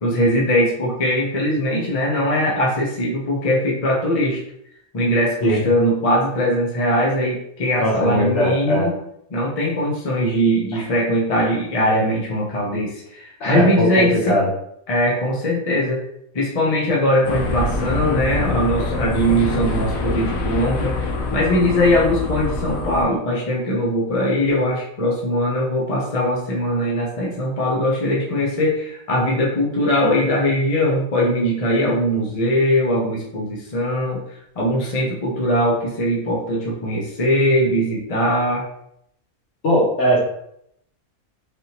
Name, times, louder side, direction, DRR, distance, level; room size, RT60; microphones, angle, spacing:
voice 1, 0.0-4.4 4.9-9.0 9.3-14.4 14.9-16.0 16.3-34.2 34.6-38.6, equal, 35° left, -3 dB, 0.6 m, -20 dB
voice 2, 7.8-8.9 13.4-14.5 39.6-40.2, equal, 60° left, -3 dB, 1.3 m, -19 dB
sound 1, 17.2-23.0, left 2 dB, 80° left, 1.0 m, -25 dB
3.4 x 2.6 x 2.8 m, 0.73 s
omnidirectional pair, 1.4 m